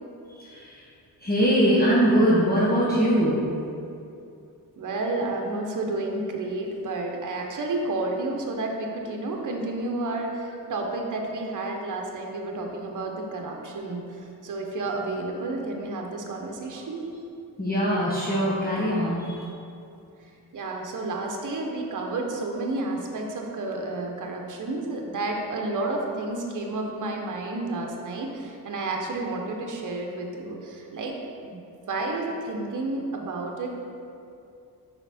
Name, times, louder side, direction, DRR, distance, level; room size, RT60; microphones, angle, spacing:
voice 1, 0.4-0.8 1.2-3.4 17.6-19.5, equal, 25° left, -7 dB, 1.2 m, -22 dB
voice 2, 4.8-17.0 20.5-31.1 31.4-31.6 31.9-33.7, right 2 dB, 50° right, 1 dB, 1.0 m, -31 dB
5.8 x 4.5 x 4.3 m, 2.6 s
cardioid pair, 85°, 39 cm